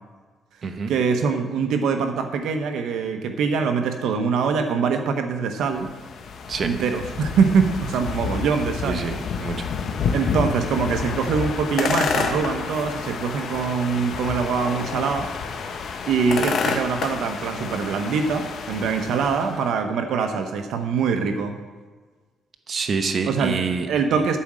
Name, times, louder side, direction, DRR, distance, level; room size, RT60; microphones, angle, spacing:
voice 1, 0.9-5.9 6.6-9.0 10.1-15.3 16.1-21.6 23.3-24.4, right 5 dB, 80° right, 6 dB, 0.9 m, -23 dB
sound 1, 5.6-19.7, left 5 dB, 65° left, 1.1 m, -29 dB
voice 2, 8.9-9.7 22.7-24.2, right 5 dB, 45° right, 6 dB, 0.9 m, -27 dB
11.5 x 4.9 x 7.4 m, 1.4 s
cardioid pair, 90°, 0 cm